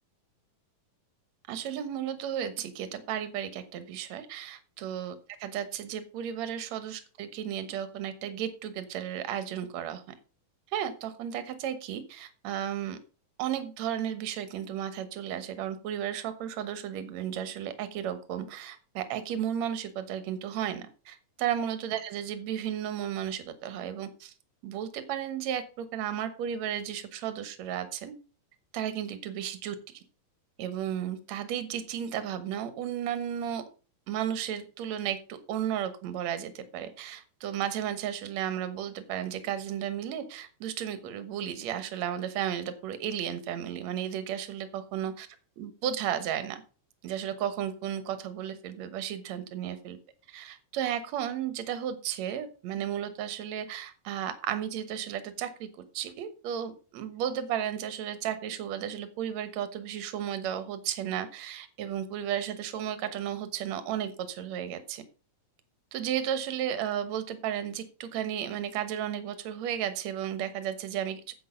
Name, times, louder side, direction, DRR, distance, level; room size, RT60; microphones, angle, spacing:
voice 1, 1.5-5.1 5.4-10.0 10.7-13.0 13.4-24.3 24.6-28.1 28.7-30.0 30.6-33.6 34.1-45.3 45.6-46.6 47.0-50.0 50.3-65.0 65.9-71.3, right 10 dB, 65° right, 11 dB, 2.3 m, -34 dB
9.4 x 8.2 x 5.2 m, 0.35 s
omnidirectional pair, 3.7 m